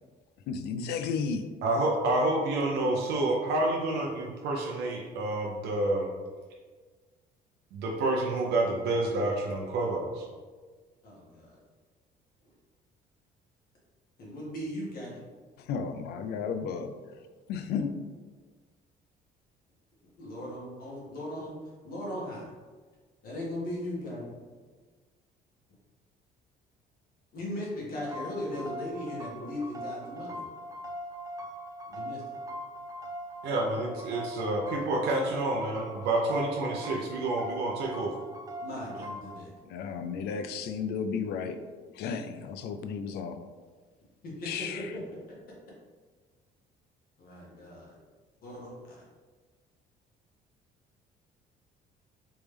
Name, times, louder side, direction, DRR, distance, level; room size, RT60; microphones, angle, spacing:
voice 1, 0.5-1.4 15.7-16.9 17.5-17.9 39.7-41.6 42.0-43.4 44.5-44.9, left 6 dB, 75° left, 9 dB, 0.4 m, -33 dB
voice 2, 1.6-6.1 7.7-10.2 33.4-38.1, right 2 dB, 80° right, -1 dB, 0.6 m, -28 dB
voice 3, 11.0-11.6 14.2-15.2 20.2-21.5 21.8-22.4 23.2-24.4 27.3-30.4 31.9-32.4 38.6-39.5 44.2-45.0 47.2-48.0 48.4-49.0, left 1 dB, 60° left, -4 dB, 1.4 m, -38 dB
sound 1, 27.9-39.4, equal, 20° right, 0.5 m, -41 dB
3.4 x 3.1 x 3.3 m, 1.4 s
cardioid pair, 110°, 17 cm